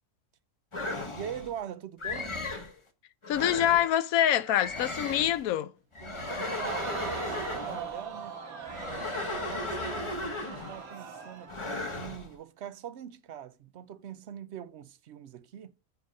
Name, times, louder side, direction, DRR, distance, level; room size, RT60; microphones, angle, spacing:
sound 1, 0.7-1.5 2.0-2.7 3.2-3.9 4.4-5.4 5.9-7.9 8.6-10.8 11.5-12.3, left 2 dB, 25° left, 1.0 m, -36 dB
voice 1, 1.1-2.4 6.0-8.4 8.8-15.7, right 9 dB, 60° right, 0.8 m, -43 dB
voice 2, 3.3-5.7, left 11 dB, 80° left, 1.1 m, -25 dB
Crowd, 6.2-11.6 12.1-12.2, right 6 dB, 75° right, 1.8 m, -40 dB
7.9 x 5.1 x 5.2 m
omnidirectional pair, 1.5 m